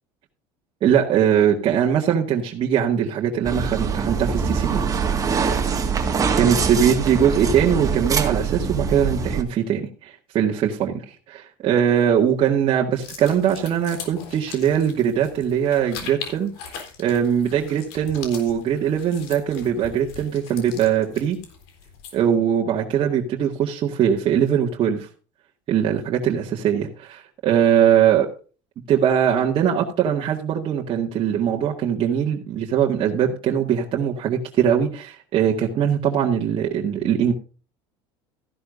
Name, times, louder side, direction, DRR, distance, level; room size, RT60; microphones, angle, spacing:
voice 1, 0.8-4.8 6.4-16.5 17.0-21.4 22.1-25.1 25.7-28.3 28.9-37.3, right 9 dB, 45° right, -2 dB, 1.8 m, -21 dB
sound 1, 3.4-9.4, right 5 dB, 30° right, 1.8 m, -23 dB
sound 2, 12.9-22.3, left 7 dB, 85° left, 3.6 m, -40 dB
14.0 x 11.5 x 2.6 m, 0.35 s
supercardioid pair, 110°, 13 cm